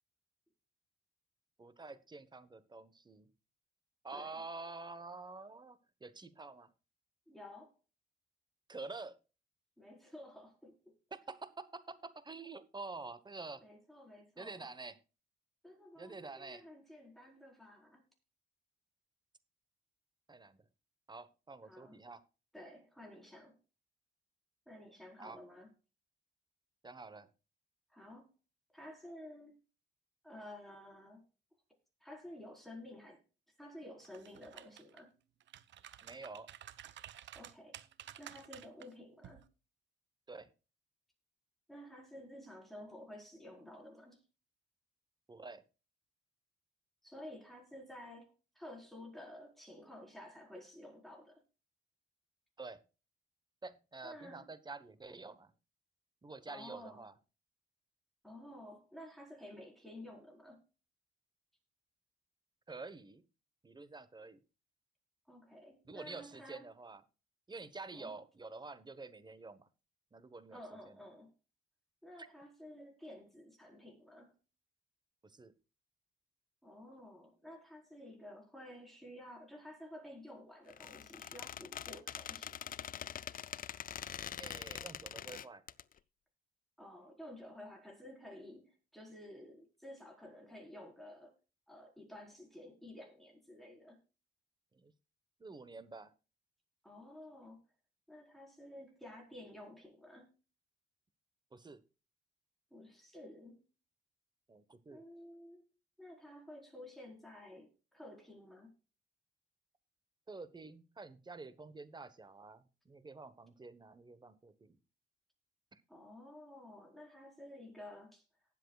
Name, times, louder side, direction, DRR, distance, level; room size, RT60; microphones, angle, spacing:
voice 1, 1.6-3.3 4.0-6.7 8.7-9.2 11.1-13.6 14.4-15.0 16.0-16.6 20.3-20.7 21.1-22.2 25.2-25.4 26.8-27.3 36.0-36.5 40.3-40.5 45.3-45.6 52.6-52.8 53.6-55.5 56.2-57.1 62.7-63.2 63.6-64.4 65.9-67.0 67.5-69.7 70.1-70.6 70.9-71.0 75.2-75.6 84.4-85.6 94.7-94.9 95.4-96.1 101.5-101.8 104.5-105.0 110.3-114.8 115.7-115.8, right 3 dB, 20° right, 14 dB, 1.2 m, -48 dB
voice 2, 7.3-7.7 9.8-10.9 13.6-14.7 15.6-18.0 21.6-22.0 22.5-23.6 24.7-25.7 27.9-28.3 28.7-29.5 30.2-31.2 32.0-33.2 33.6-35.1 37.3-37.8 38.2-39.4 41.7-44.2 47.0-48.3 48.5-51.4 54.0-54.4 56.5-57.0 58.2-60.6 65.3-66.6 67.9-68.1 70.5-71.3 72.0-74.3 76.6-82.7 86.8-91.3 91.7-94.0 96.8-97.6 98.1-100.3 102.7-103.6 104.9-105.6 106.0-108.7 115.9-118.2, left 1 dB, ahead, 0 dB, 4.5 m, -52 dB
sound 1, 34.0-35.0 35.4-38.9 39.2-39.4, right 11 dB, 70° right, 0.8 m, -52 dB
Squeak, 80.7-85.8, left 9 dB, 45° left, 0.5 m, -44 dB
19.0 x 7.6 x 2.4 m, 0.33 s
cardioid pair, 90°, 20 cm